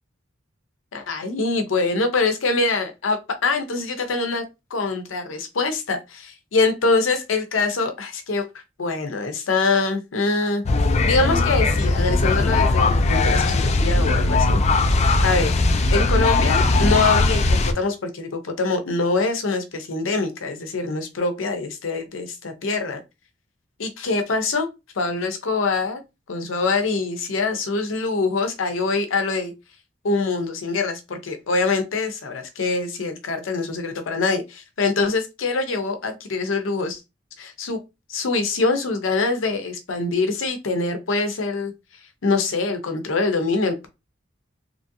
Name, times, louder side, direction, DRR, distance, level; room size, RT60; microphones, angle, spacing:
voice 1, 0.9-4.4 4.7-10.6 11.0-15.5 15.9-23.0 23.8-24.7 24.9-26.0 26.3-29.5 30.0-37.0 37.4-37.8 38.1-41.7 42.2-43.9, left 3 dB, 90° left, 7 dB, 0.6 m, -24 dB
sound 1, 10.7-17.7, left 3 dB, 35° left, 0.3 m, -19 dB
2.9 x 2.6 x 2.6 m, 0.25 s
head